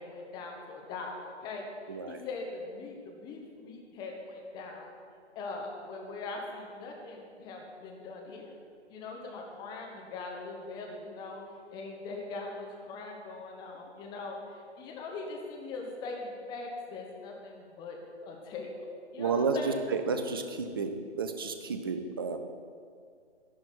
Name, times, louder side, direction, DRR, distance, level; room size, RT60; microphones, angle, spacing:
voice 1, 0.0-1.7 2.1-4.9 5.3-8.5 8.9-18.7 19.1-19.8, left 3 dB, 10° left, 1 dB, 1.0 m, -41 dB
voice 2, 1.9-2.2 19.2-19.6 20.1-22.4, right 5 dB, 20° right, 7 dB, 0.5 m, -32 dB
12.0 x 11.0 x 4.5 m, 2.2 s
figure-of-eight pair, 140°, 35 cm